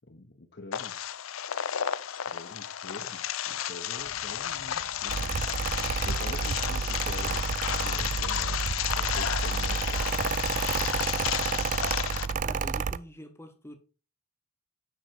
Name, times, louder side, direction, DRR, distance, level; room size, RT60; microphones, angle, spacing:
voice 1, 0.1-1.0 2.3-5.5 6.0-8.7 9.0-10.0, left 2 dB, 55° left, 1.1 m, -45 dB
sound 1, 0.7-12.3, left 10 dB, 85° left, 0.6 m, -32 dB
sound 2, 4.0-9.0, right 1 dB, 85° right, 1.5 m, -52 dB
Mechanical fan, 5.1-13.0, right 5 dB, 40° right, 0.3 m, -30 dB
voice 2, 12.3-13.8, equal, 15° left, 1.4 m, -45 dB
9.4 x 6.4 x 4.5 m
head